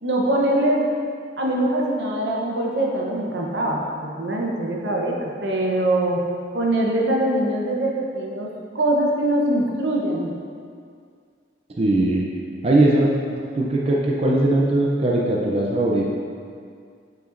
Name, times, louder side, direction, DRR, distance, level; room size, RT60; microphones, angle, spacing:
voice 1, 0.0-0.9 1.4-6.2 6.5-10.3, right 1 dB, 75° right, -1 dB, 0.9 m, -23 dB
voice 2, 11.8-12.2 12.6-16.1, right 1 dB, 35° right, -3 dB, 0.5 m, -20 dB
7.9 x 5.0 x 2.6 m, 2.2 s
head